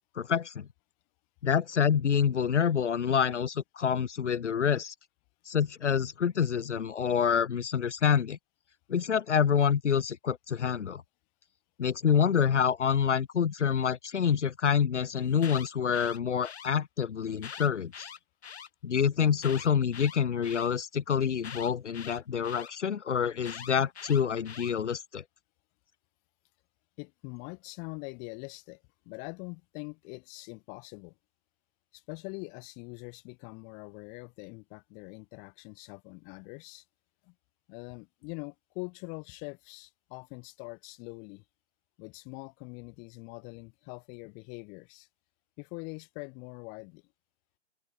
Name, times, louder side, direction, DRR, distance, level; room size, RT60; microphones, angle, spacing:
voice 1, 0.2-0.7 1.4-4.9 5.5-8.4 8.9-11.0 11.8-18.1 18.8-25.2, left 7 dB, 80° left, 0.7 m, -27 dB
Alarm, 15.2-16.7 17.3-18.7 19.4-20.7 21.4-22.7 23.4-24.7, left 7 dB, 65° left, 1.2 m, -44 dB
voice 2, 27.0-31.2 31.9-36.9 37.2-37.4 37.7-41.4 42.0-45.1 45.6-47.0, left 35 dB, 20° left, 1.7 m, -43 dB
open air
figure-of-eight pair, 135°, 35 cm